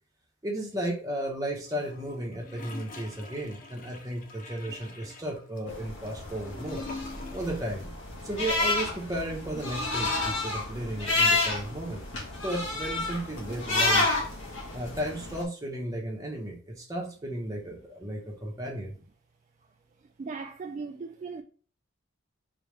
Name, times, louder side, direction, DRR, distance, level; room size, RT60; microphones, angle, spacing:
voice 1, 0.4-6.8 7.3-7.9 8.2-12.0 12.4-14.1 14.7-18.9, right 1 dB, 15° right, 1.2 m, -34 dB
Gurgling / Toilet flush, 1.6-7.7 8.0-8.1, left 3 dB, 40° left, 0.7 m, -45 dB
sound 1, 5.7-15.4, left 2 dB, 60° left, 1.5 m, -30 dB
voice 2, 20.2-21.4, right 4 dB, 35° right, 0.3 m, -37 dB
4.2 x 3.5 x 3.3 m
head